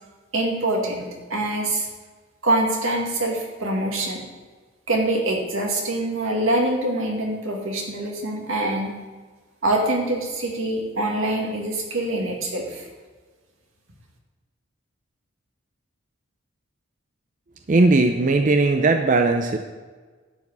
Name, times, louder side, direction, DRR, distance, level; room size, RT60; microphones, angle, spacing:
voice 1, 0.3-1.9 2.4-4.2 4.9-8.9 9.6-12.9, right 1 dB, 85° right, 0 dB, 2.3 m, -24 dB
voice 2, 17.7-19.6, right 3 dB, 40° right, 5 dB, 0.6 m, -18 dB
11.0 x 5.0 x 8.1 m, 1.4 s
head